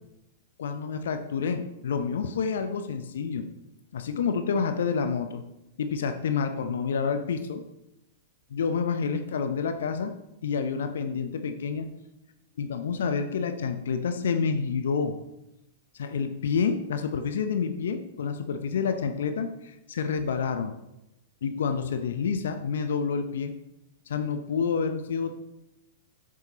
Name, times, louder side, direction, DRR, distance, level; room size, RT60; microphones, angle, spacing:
voice 1, 0.6-3.5 3.9-5.4 5.8-7.6 8.5-10.1 10.4-11.9 12.6-15.2 15.9-20.7 21.4-23.5 24.1-25.3, left 6 dB, 70° left, 8 dB, 0.6 m, -28 dB
7.6 x 7.5 x 2.8 m, 0.90 s
figure-of-eight pair, 105°, 0 cm